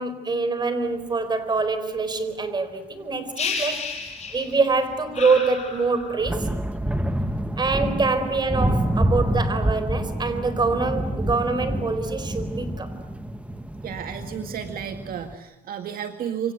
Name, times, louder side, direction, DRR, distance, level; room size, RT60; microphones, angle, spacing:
voice 1, 0.0-6.5 7.6-12.9, right 4 dB, 25° right, 11 dB, 4.4 m, -25 dB
sound 1, 3.4-4.7 5.1-6.4, left 5 dB, 40° left, 6.0 m, -31 dB
sound 2, 4.1-4.2 4.4-4.6 4.9-5.4 5.9-15.4, right 1 dB, 5° right, 1.6 m, -27 dB
voice 2, 13.8-16.5, right 8 dB, 60° right, 7 dB, 2.0 m, -32 dB
27.0 x 26.5 x 8.1 m, 0.97 s
cardioid pair, 110°, 17 cm